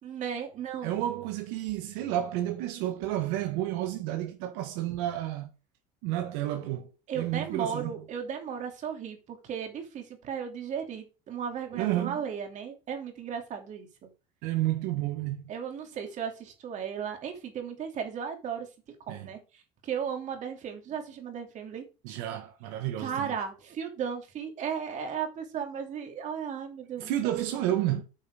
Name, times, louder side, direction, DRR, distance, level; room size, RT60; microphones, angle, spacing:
voice 1, 0.0-1.0 7.1-14.1 15.5-18.7 19.1-21.9 23.0-27.3, right 7 dB, 45° right, 2.9 m, -35 dB
voice 2, 0.8-5.5 6.0-7.9 11.7-12.2 14.4-15.4 19.1-19.3 22.0-23.4 27.0-28.0, right 13 dB, 80° right, 1.3 m, -31 dB
8.6 x 5.8 x 4.9 m
cardioid pair, 130°, 18 cm